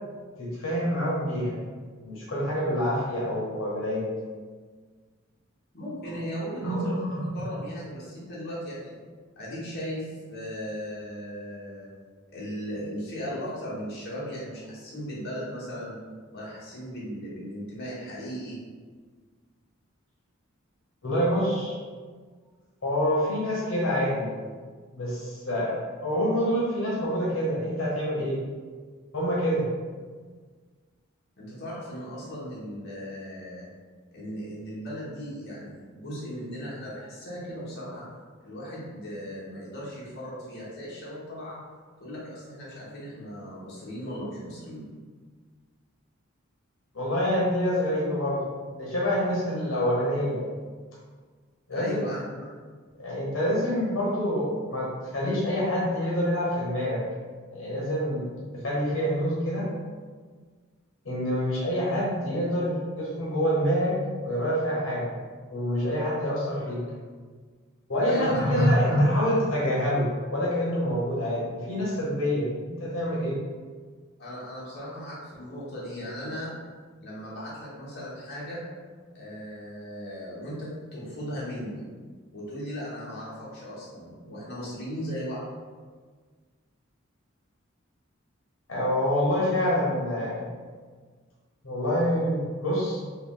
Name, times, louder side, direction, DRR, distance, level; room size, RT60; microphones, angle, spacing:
voice 1, 0.4-1.5 2.0-4.1 6.1-6.2 6.6-7.3 21.0-21.7 22.8-24.4 24.9-28.4 29.1-29.7 46.9-48.4 48.7-50.4 51.7-52.1 52.9-57.0 57.5-59.7 61.0-65.1 65.5-66.8 67.9-73.4 88.7-90.5 91.6-93.0, equal, 75° left, -6 dB, 1.0 m, -26 dB
voice 2, 5.7-7.0 7.3-9.0 9.4-11.9 12.3-16.0 16.3-18.6 31.4-33.7 34.1-38.0 38.4-41.6 42.0-44.8 51.7-52.2 68.1-68.7 74.2-76.5 77.0-78.6 79.1-81.8 82.3-85.4, equal, 55° left, -8 dB, 1.0 m, -37 dB
3.3 x 2.3 x 3.6 m, 1.5 s
head